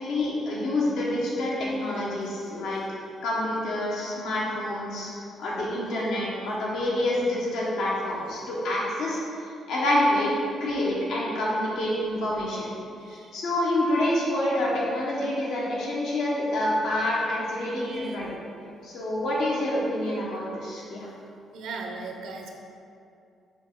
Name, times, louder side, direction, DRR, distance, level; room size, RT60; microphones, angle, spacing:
voice 1, 0.0-2.8 3.2-5.1 5.4-9.2 9.7-10.3 10.6-12.7 13.1-18.4 18.8-21.1, left 1 dB, 80° left, -5 dB, 1.3 m, -27 dB
voice 2, 17.6-18.2 21.5-22.5, right 4 dB, 80° right, 2 dB, 0.8 m, -39 dB
6.0 x 5.3 x 3.8 m, 2.6 s
cardioid pair, 90°, 0 cm